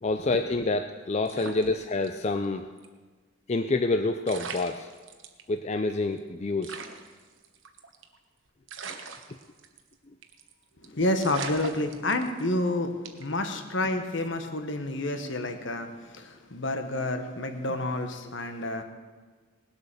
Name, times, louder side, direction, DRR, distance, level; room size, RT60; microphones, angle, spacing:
voice 1, 0.0-2.6 3.5-4.9 5.5-6.8, left 3 dB, 30° left, 8 dB, 0.4 m, -27 dB
sound 1, 1.2-2.4 2.8-2.9 3.9-4.0 4.2-5.4 5.9-6.0 6.2-6.3 6.6-8.2 8.7-9.9 10.2-10.5 10.8-10.9 11.2-12.6 13.0-13.4, right 5 dB, 65° right, 1.2 m, -40 dB
voice 2, 11.0-12.9 13.2-18.8, left 2 dB, 60° left, 7 dB, 1.3 m, -29 dB
18.5 x 8.0 x 6.8 m, 1.4 s
head